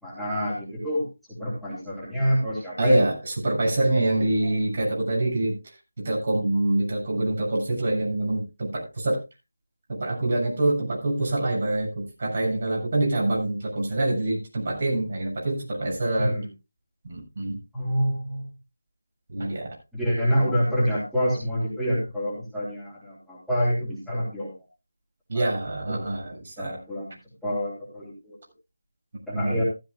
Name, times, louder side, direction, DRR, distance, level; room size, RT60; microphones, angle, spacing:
voice 1, 0.0-3.0 16.2-16.4 17.7-18.4 19.4-19.5 19.9-24.5 25.3-25.5 25.9-26.0 26.6-27.1 27.4-28.4 29.3-29.6, equal, ahead, -11 dB, 3.8 m, -27 dB
voice 2, 2.8-5.6 6.0-9.2 9.9-16.4 17.0-17.6 19.3-19.7 25.3-26.8 29.3-29.7, right 1 dB, 45° right, 0 dB, 7.4 m, -25 dB
15.0 x 14.0 x 2.5 m, 0.27 s
figure-of-eight pair, 165°, 0 cm